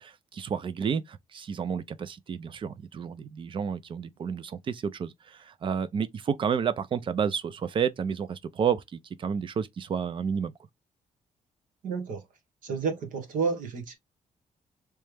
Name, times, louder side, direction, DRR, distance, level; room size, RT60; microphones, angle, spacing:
voice 1, 0.0-10.5, right 7 dB, 40° right, 0.4 m, -31 dB
voice 2, 11.8-12.2 12.6-14.0, right 5 dB, 85° right, 1.4 m, -30 dB
3.2 x 3.1 x 3.4 m
wide cardioid pair, 155°, 13 cm